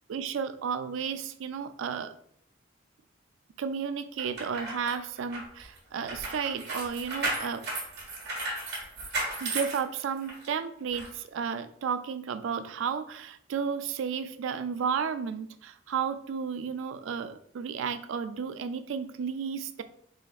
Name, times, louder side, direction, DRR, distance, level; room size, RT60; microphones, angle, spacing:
voice 1, 0.1-2.1 3.6-7.6 9.4-19.8, right 6 dB, 75° right, 11 dB, 0.3 m, -33 dB
sound 1, 4.2-10.5 10.9-11.1, right 2 dB, 55° right, 1.4 m, -35 dB
4.1 x 3.9 x 2.4 m, 0.68 s
head